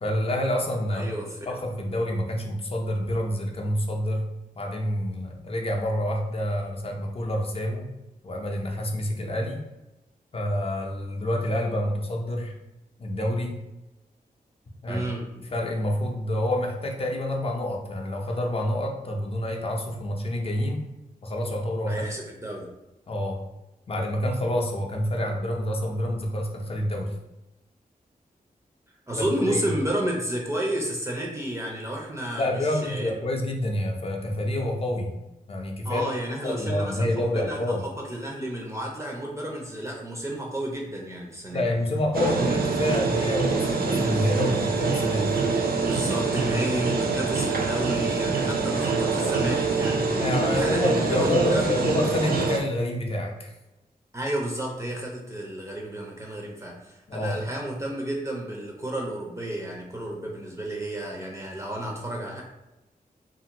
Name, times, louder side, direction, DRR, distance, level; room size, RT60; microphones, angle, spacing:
voice 1, 0.0-1.1 1.5-4.3 4.5-7.9 8.2-9.6 10.3-12.5 13.0-13.6 14.8-15.0 15.5-20.8 21.2-22.0 23.1-23.4 23.9-27.1 29.1-29.6 32.4-35.1 35.5-36.2 36.4-37.9 41.5-45.4 50.2-53.5 57.1-57.4, left 1 dB, 40° left, 1 dB, 0.5 m, -28 dB
voice 2, 0.9-1.4 14.9-15.2 21.9-22.7 29.1-33.1 35.8-41.7 45.8-51.9 54.1-62.4, right 1 dB, 20° right, -1 dB, 0.5 m, -31 dB
sound 1, 42.1-52.6, right 4 dB, 75° right, 0.5 m, -25 dB
2.9 x 2.5 x 2.8 m, 0.97 s
wide cardioid pair, 105°, 15 cm